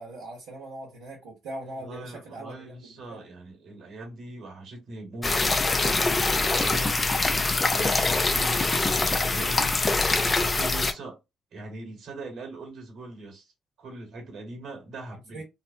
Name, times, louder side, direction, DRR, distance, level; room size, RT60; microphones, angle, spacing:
voice 1, 0.0-3.3 15.1-15.4, right 1 dB, 80° right, 0.9 m, -41 dB
voice 2, 1.8-7.0 7.7-9.7 10.3-11.2 11.5-13.5 13.8-15.4, right 2 dB, 60° right, 1.2 m, -41 dB
sound 1, 5.2-10.9, left 3 dB, 30° left, 0.5 m, -24 dB
2.8 x 2.0 x 2.7 m
hypercardioid pair, 50°, 0 cm